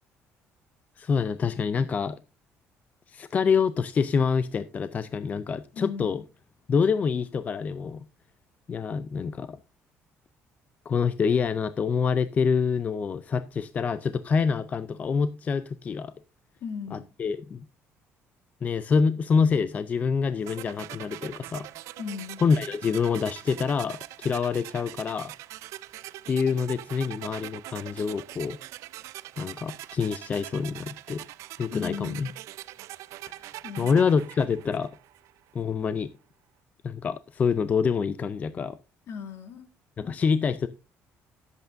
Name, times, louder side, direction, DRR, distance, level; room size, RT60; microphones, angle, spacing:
voice 1, 1.0-2.2 3.1-6.2 6.7-8.0 8.7-9.6 10.9-16.1 16.9-17.7 18.6-21.7 22.4-25.3 26.3-28.6 29.4-31.2 31.6-32.3 33.8-34.9 35.5-36.1 36.8-38.8 40.0-40.7, left 5 dB, 30° left, 0.4 m, -26 dB
voice 2, 5.7-6.2 16.6-17.0 22.0-22.4 31.7-32.3 33.6-33.9 39.1-39.7, left 6 dB, 55° left, 1.7 m, -37 dB
sound 1, 20.5-35.4, right 16 dB, 85° right, 0.5 m, -42 dB
17.5 x 8.1 x 2.6 m
cardioid pair, 150°, 5 cm